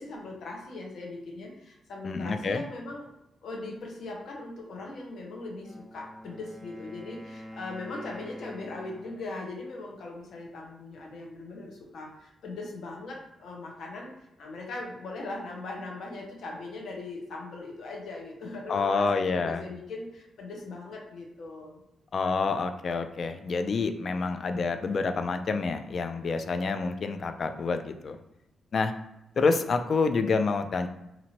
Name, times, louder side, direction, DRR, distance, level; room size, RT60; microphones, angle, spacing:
voice 1, 0.0-3.1 3.4-21.8, left 2 dB, 75° left, -1 dB, 0.8 m, -40 dB
voice 2, 2.0-2.6 18.7-19.6 22.1-28.2 28.7-28.9 29.4-30.9, left 4 dB, 50° left, 8 dB, 0.3 m, -28 dB
Wind instrument woodwind instrument, 5.5-9.3, equal, 20° left, 0.9 m, -45 dB
2.9 x 2.5 x 2.8 m, 0.88 s
cardioid pair, 110°, 0 cm